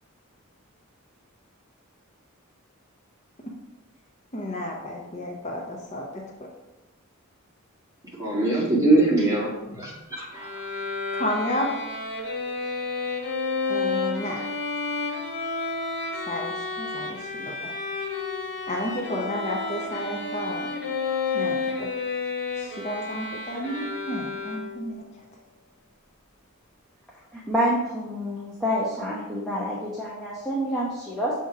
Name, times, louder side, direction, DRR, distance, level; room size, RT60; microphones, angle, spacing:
voice 1, 4.3-6.5 11.1-11.7 13.7-14.4 16.3-17.8 18.7-20.7 21.3-21.9 22.5-25.2, left 1 dB, 30° left, -1 dB, 0.7 m, -32 dB
voice 2, 8.2-10.5, right 2 dB, 15° right, -6 dB, 1.8 m, -22 dB
Bowed string instrument, 10.3-25.0, left 4 dB, 55° left, 1.6 m, -31 dB
voice 3, 27.3-31.3, equal, ahead, -7 dB, 0.9 m, -27 dB
7.1 x 2.9 x 4.8 m, 0.99 s
head